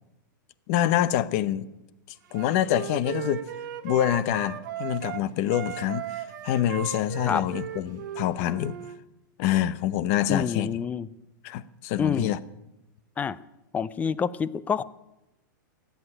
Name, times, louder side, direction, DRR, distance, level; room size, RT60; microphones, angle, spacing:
voice 1, 0.7-1.7 2.3-3.4 3.8-8.8 9.4-10.8 11.4-12.4, left 12 dB, 45° left, 0.9 m, -26 dB
Wind instrument woodwind instrument, 2.3-5.2 5.5-9.0, right 11 dB, 70° right, 1.5 m, -36 dB
voice 2, 10.3-11.1 12.0-12.3 13.2-13.4 13.7-14.8, left 6 dB, 15° left, 0.5 m, -27 dB
15.5 x 8.3 x 9.9 m
supercardioid pair, 145°, 11 cm